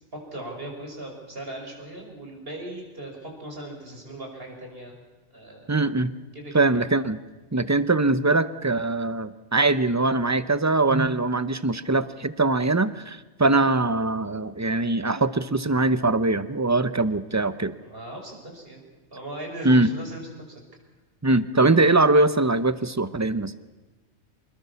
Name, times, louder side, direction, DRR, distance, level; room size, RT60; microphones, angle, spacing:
voice 1, 0.1-4.9 5.3-5.8 6.3-6.8 17.7-18.8 19.1-20.6, right 1 dB, 45° right, 1 dB, 5.8 m, -38 dB
voice 2, 5.7-6.1 6.5-7.2 7.5-17.7 19.6-19.9 21.2-23.5, right 2 dB, 20° right, 13 dB, 0.6 m, -22 dB
26.5 x 20.5 x 7.0 m, 1.3 s
omnidirectional pair, 1.3 m